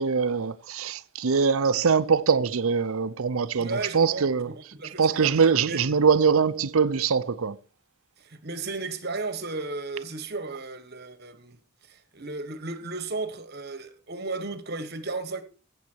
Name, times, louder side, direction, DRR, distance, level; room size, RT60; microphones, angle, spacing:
voice 1, 0.0-4.5 5.0-7.6, right 5 dB, 75° right, 0.6 m, -23 dB
voice 2, 3.6-5.8 8.2-11.6 11.9-15.4, right 3 dB, 45° right, 1.3 m, -34 dB
15.0 x 7.2 x 4.6 m
head